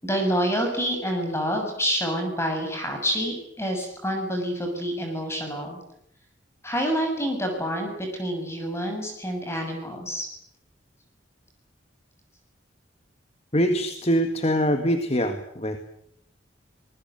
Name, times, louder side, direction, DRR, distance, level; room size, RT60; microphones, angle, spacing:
voice 1, 0.0-5.8 6.6-10.3, equal, 15° left, 3 dB, 6.8 m, -27 dB
voice 2, 13.5-15.8, equal, 30° left, 7 dB, 1.9 m, -23 dB
26.5 x 20.5 x 9.2 m, 0.74 s
head